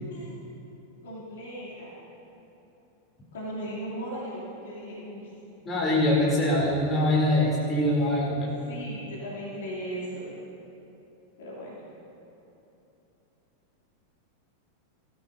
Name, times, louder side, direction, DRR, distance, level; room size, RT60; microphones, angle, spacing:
voice 1, 1.0-1.9 3.3-5.3 5.9-6.6 8.7-10.3 11.4-11.7, right 1 dB, 60° left, -6 dB, 3.1 m, -38 dB
voice 2, 5.6-8.5, left 1 dB, 20° left, -5 dB, 3.3 m, -23 dB
18.5 x 13.5 x 2.8 m, 3.0 s
figure-of-eight pair, 90°, 0 cm